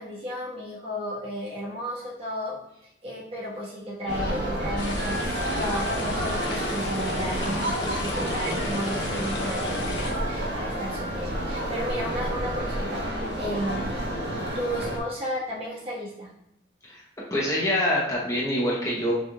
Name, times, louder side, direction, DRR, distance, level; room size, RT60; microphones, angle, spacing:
voice 1, 0.0-2.5 2.8-16.3, equal, 35° right, -6 dB, 1.4 m, -33 dB
sound 1, 4.1-15.0, right 1 dB, 70° right, 1.1 m, -30 dB
sound 2, 4.8-10.1, left 2 dB, 90° left, 0.9 m, -34 dB
voice 2, 17.3-19.1, left 1 dB, 15° left, -5 dB, 0.9 m, -25 dB
5.9 x 3.5 x 2.4 m, 0.82 s
head